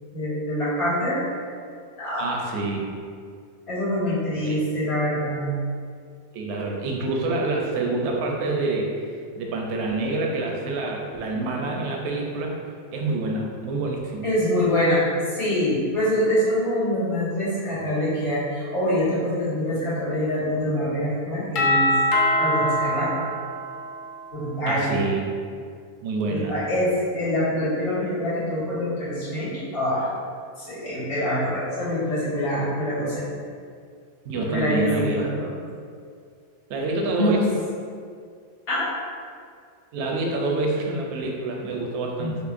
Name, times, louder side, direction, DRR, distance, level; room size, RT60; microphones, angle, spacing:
voice 1, 0.1-1.2 2.0-2.3 3.7-5.5 14.2-21.9 22.4-23.2 24.3-24.9 26.3-30.1 30.6-33.3 34.5-35.5 37.1-37.4 38.7-38.9 42.2-42.3, equal, 85° left, -12 dB, 2.0 m, -25 dB
voice 2, 2.2-3.0 4.4-4.5 6.3-8.9 9.4-12.5 12.9-14.3 24.7-25.3 26.0-26.6 34.2-35.3 36.7-37.5 39.9-42.4, right 2 dB, 65° right, 0 dB, 0.7 m, -27 dB
Doorbell, 21.6-24.4, left 1 dB, 55° left, 0.5 m, -23 dB
5.6 x 2.0 x 2.5 m, 2.2 s
omnidirectional pair, 1.5 m